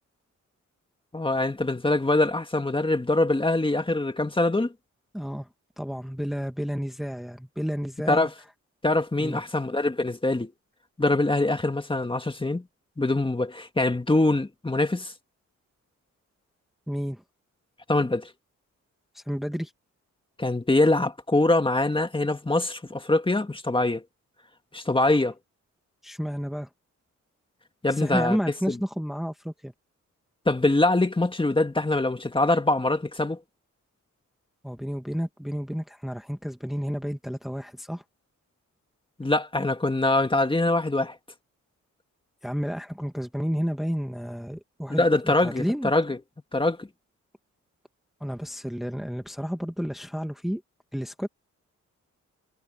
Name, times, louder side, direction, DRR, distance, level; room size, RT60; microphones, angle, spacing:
voice 1, 1.1-4.7 8.1-8.3 8.8-10.5 11.0-12.6 13.0-15.1 17.9-18.3 20.4-24.0 24.7-25.3 27.8-28.4 28.7-28.8 30.5-33.4 39.2-41.2 45.0-46.2 46.5-46.9, left 2 dB, 15° left, 2.1 m, -23 dB
voice 2, 5.1-5.5 5.8-8.3 9.2-9.4 16.9-17.2 19.1-19.7 26.0-26.7 27.9-29.7 34.6-38.0 42.4-45.9 48.2-50.6 50.9-51.3, equal, ahead, 1.6 m, -31 dB
cardioid pair, 80°, 31 cm